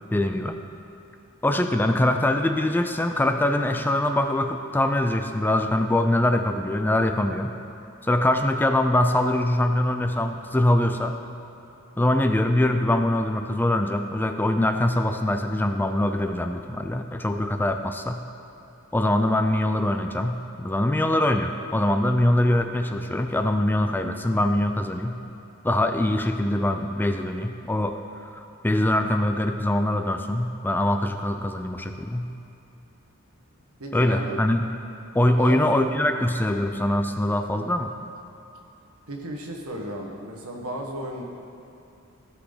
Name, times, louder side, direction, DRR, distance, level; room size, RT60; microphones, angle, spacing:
voice 1, 0.1-0.6 1.4-7.5 8.0-11.2 12.0-18.2 18.9-25.2 25.6-28.0 28.3-32.3 33.9-34.7 35.1-37.9, left 1 dB, 10° left, 6 dB, 0.4 m, -23 dB
voice 2, 33.8-34.4 35.3-36.3 39.1-41.2, right 1 dB, 85° right, 0 dB, 1.4 m, -34 dB
15.0 x 6.0 x 3.9 m, 2.8 s
head